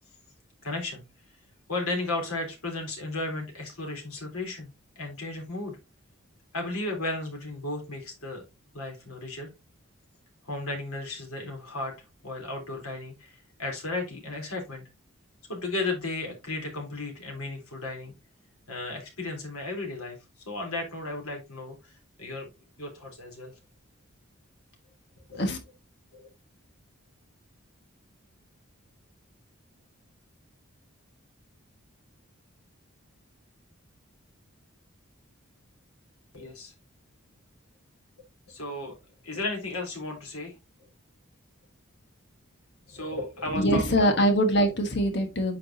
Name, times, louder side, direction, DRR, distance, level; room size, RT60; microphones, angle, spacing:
voice 1, 0.6-1.0 1.7-4.7 5.0-5.8 6.5-8.4 8.7-9.5 10.4-11.9 12.2-14.8 15.5-18.1 18.7-20.2 20.5-21.8 22.2-22.5 22.8-23.5 25.3-25.4 26.1-26.3 36.3-36.7 38.5-39.0 39.2-40.5 42.9-44.2, left 2 dB, 90° left, 1 dB, 3.6 m, -34 dB
voice 2, 43.5-45.6, equal, 50° left, 6 dB, 1.4 m, -23 dB
9.0 x 5.0 x 2.7 m, 0.24 s
head